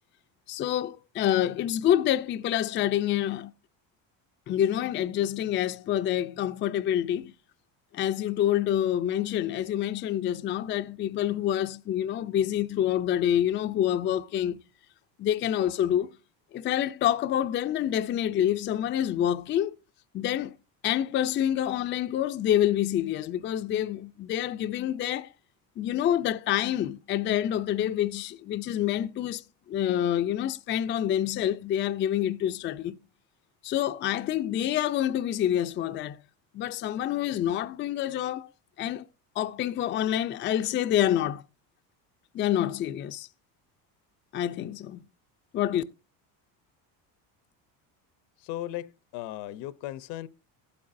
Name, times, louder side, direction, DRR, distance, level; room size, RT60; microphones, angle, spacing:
voice 1, 0.5-3.5 4.5-7.3 7.9-14.6 15.2-16.1 16.5-19.8 20.1-20.5 20.8-25.3 25.8-29.4 29.7-33.0 33.6-36.2 36.5-38.5 38.8-39.0 39.4-41.4 42.3-43.3 44.3-45.1 45.5-45.8, left 11 dB, 30° left, 0.4 m, -27 dB
voice 2, 48.4-50.3, left 14 dB, 75° left, 0.7 m, -37 dB
13.5 x 8.5 x 2.6 m
cardioid pair, 115°, 41 cm